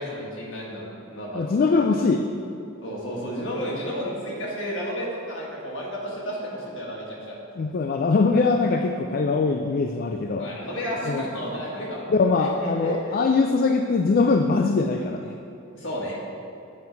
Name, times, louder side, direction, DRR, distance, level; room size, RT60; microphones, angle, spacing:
voice 1, 0.0-1.8 2.8-7.4 10.4-12.1 12.4-13.2 15.7-16.1, equal, 60° left, -4 dB, 1.7 m, -32 dB
voice 2, 1.3-2.3 7.6-10.5 11.1-11.2 12.1-15.3, left 4 dB, 45° left, 4 dB, 0.3 m, -22 dB
7.7 x 5.4 x 4.5 m, 2.7 s
head